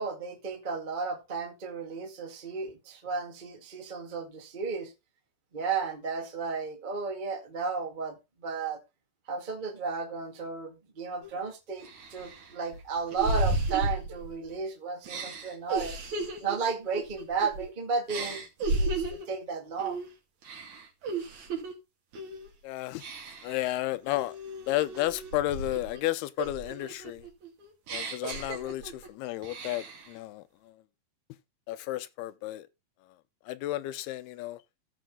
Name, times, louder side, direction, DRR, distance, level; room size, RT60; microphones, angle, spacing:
voice 1, 0.0-4.9 5.5-8.8 9.3-16.0 16.4-18.4 18.7-20.0, right 5 dB, 90° right, 0.4 m, -33 dB
sound 1, 11.2-11.3 11.8-14.6 15.1-17.7 18.1-19.3 19.8-20.1 20.4-21.7 22.1-22.5 23.0-23.6 24.1-26.0 26.4-29.1 29.4-30.1, right 2 dB, 50° right, 3.3 m, -34 dB
voice 2, 22.6-23.0 23.4-24.4 24.7-27.3 27.9-30.8 31.7-32.7 33.5-34.6, left 15 dB, 80° left, 2.5 m, -32 dB
15.5 x 5.3 x 3.7 m
omnidirectional pair, 4.7 m